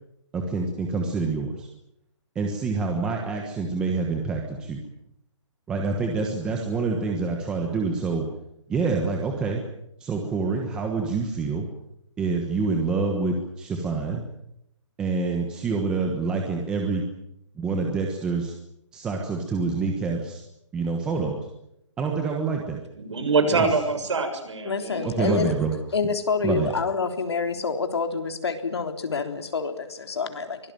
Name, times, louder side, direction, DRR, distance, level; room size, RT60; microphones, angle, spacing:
voice 1, 0.3-1.7 2.3-4.8 5.7-8.3 8.7-9.6 10.0-11.7 12.2-14.2 15.0-17.0 17.6-18.5 18.9-20.4 20.7-21.5 22.0-22.8 23.5-23.7 25.0-25.7 26.4-26.7, right 4 dB, 5° right, 2 dB, 1.3 m, -26 dB
voice 2, 23.0-25.4, right 4 dB, 65° right, 7 dB, 6.9 m, -25 dB
voice 3, 24.6-25.5 25.9-30.6, left 5 dB, 55° left, 6 dB, 3.5 m, -27 dB
24.5 x 18.0 x 9.2 m, 0.79 s
hypercardioid pair, 175°, 16 cm